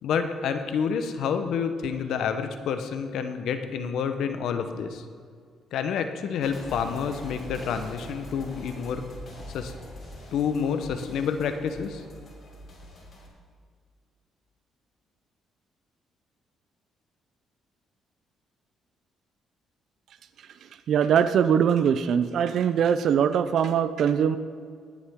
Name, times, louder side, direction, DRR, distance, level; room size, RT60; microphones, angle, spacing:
voice 1, 0.0-5.0 5.7-9.0 9.5-9.7 10.3-12.0, left 6 dB, 75° left, 8 dB, 0.9 m, -28 dB
sound 1, 6.4-13.3, left 1 dB, 45° left, 3.4 m, -43 dB
voice 2, 20.9-24.4, right 8 dB, 65° right, 11 dB, 0.4 m, -22 dB
19.0 x 7.2 x 3.6 m, 2.1 s
cardioid pair, 100°, 0 cm